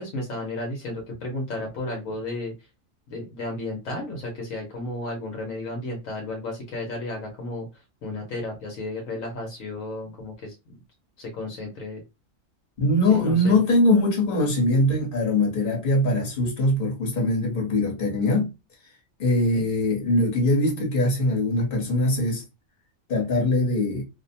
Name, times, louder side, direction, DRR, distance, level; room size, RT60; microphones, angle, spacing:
voice 1, 0.0-2.5 3.1-7.7 8.0-10.5 11.2-12.0 13.1-13.6 19.4-19.7, left 2 dB, 75° left, 1.2 m, -33 dB
voice 2, 12.8-18.5 19.2-22.4 23.1-24.0, left 1 dB, 45° left, 1.2 m, -22 dB
2.7 x 2.1 x 2.6 m
omnidirectional pair, 1.4 m